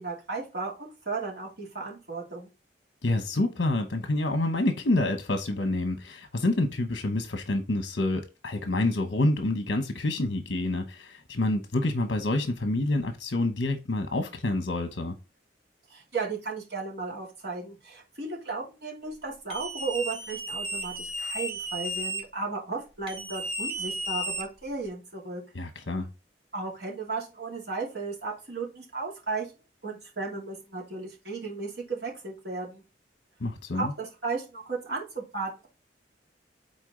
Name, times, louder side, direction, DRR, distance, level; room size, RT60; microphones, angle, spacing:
voice 1, 0.0-2.5 15.9-25.4 26.5-29.5 29.8-32.8 33.7-35.7, right 4 dB, 60° right, 2.8 m, -35 dB
voice 2, 3.0-15.2 25.5-26.1 33.4-33.9, left 2 dB, 60° left, 1.0 m, -27 dB
sound 1, 19.5-22.2 23.1-24.9, equal, 30° right, 1.9 m, -34 dB
8.0 x 4.3 x 3.8 m
head